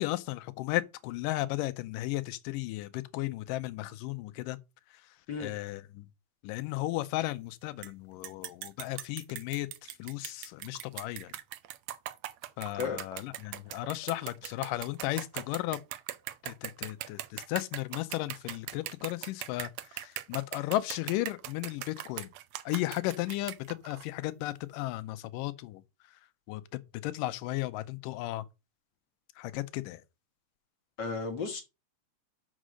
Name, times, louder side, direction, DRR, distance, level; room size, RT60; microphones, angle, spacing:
voice 1, 0.0-4.6 4.9-5.2 5.4-6.1 6.4-11.3 12.6-15.8 16.4-22.3 22.7-25.8 26.1-26.2 26.5-28.5 29.4-30.0, left 17 dB, 90° left, 2.3 m, -35 dB
sound 1, 7.8-7.9 8.2-24.1, right 14 dB, 75° right, 1.7 m, -40 dB
voice 2, 31.0-31.6, left 4 dB, 55° left, 1.2 m, -33 dB
6.4 x 6.3 x 6.3 m
omnidirectional pair, 3.8 m